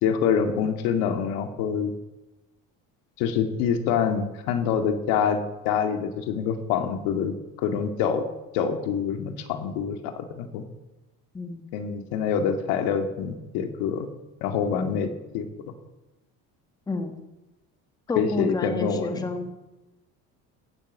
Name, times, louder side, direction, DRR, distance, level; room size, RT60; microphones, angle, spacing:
voice 1, 0.0-1.9 3.2-8.2 8.5-10.6 11.7-14.1 14.4-15.7 18.2-19.3, left 7 dB, 80° left, 6 dB, 2.3 m, -26 dB
voice 2, 11.3-11.7 14.8-14.9 16.9-17.2 18.1-19.5, left 2 dB, 10° left, 6 dB, 1.2 m, -30 dB
16.5 x 9.9 x 7.4 m, 1.0 s
cardioid pair, 175°, 36 cm